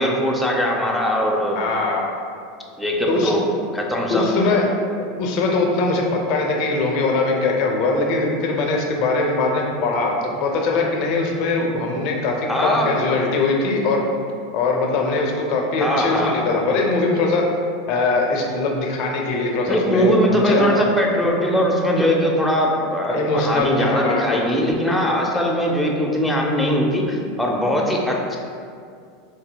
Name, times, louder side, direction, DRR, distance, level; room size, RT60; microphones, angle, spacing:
voice 1, 0.0-1.6 2.8-3.5 3.7-4.3 12.5-13.0 15.8-16.5 19.7-28.4, equal, 5° left, -2 dB, 0.5 m, -20 dB
voice 2, 1.5-2.0 3.1-3.3 4.1-4.7 5.2-10.1 10.4-14.0 14.5-17.4 17.9-20.7 23.1-24.4, left 3 dB, 55° left, 1 dB, 0.5 m, -21 dB
4.0 x 2.6 x 2.2 m, 2.3 s
hypercardioid pair, 95°, 0 cm